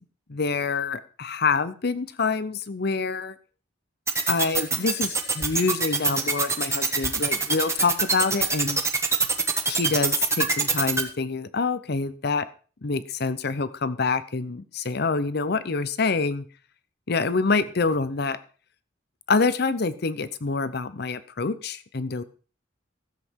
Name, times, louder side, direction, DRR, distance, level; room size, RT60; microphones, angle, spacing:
voice 1, 0.3-3.3 4.3-8.8 9.7-12.5 12.8-16.5 17.1-18.4 19.3-22.2, left 4 dB, 60° left, 15 dB, 0.8 m, -26 dB
sound 1, 4.1-11.0, right 4 dB, 15° right, 1.4 m, -23 dB
15.0 x 7.7 x 4.6 m, 0.38 s
head